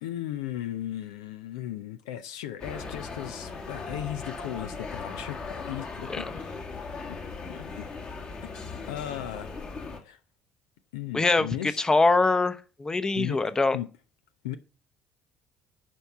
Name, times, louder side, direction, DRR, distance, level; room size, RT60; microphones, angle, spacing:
voice 1, 0.0-6.4 6.8-7.2 7.5-7.9 8.4-8.5 8.9-9.5 10.0-10.2 10.9-11.8 13.2-13.4 13.7-13.9 14.4-14.6, left 12 dB, 75° left, 0.5 m, -36 dB
sound 1, 2.6-10.0, left 4 dB, 45° left, 2.1 m, -38 dB
voice 2, 11.1-13.8, left 3 dB, 20° left, 0.9 m, -23 dB
11.0 x 4.6 x 5.7 m
figure-of-eight pair, 50°, 3 cm